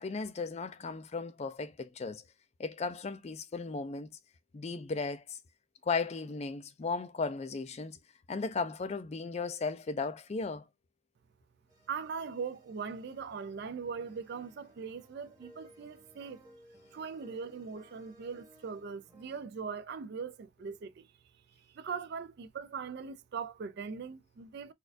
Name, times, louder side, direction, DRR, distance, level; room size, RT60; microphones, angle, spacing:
voice 1, 0.0-2.2 2.6-4.1 4.5-5.4 5.8-8.0 8.3-10.6, left 4 dB, 30° left, 0.3 m, -36 dB
sound 1, 11.7-19.4, equal, 15° right, 1.2 m, -60 dB
voice 2, 11.9-16.4 16.9-21.1 21.6-24.7, right 5 dB, 50° right, 0.3 m, -40 dB
4.1 x 2.4 x 2.5 m
head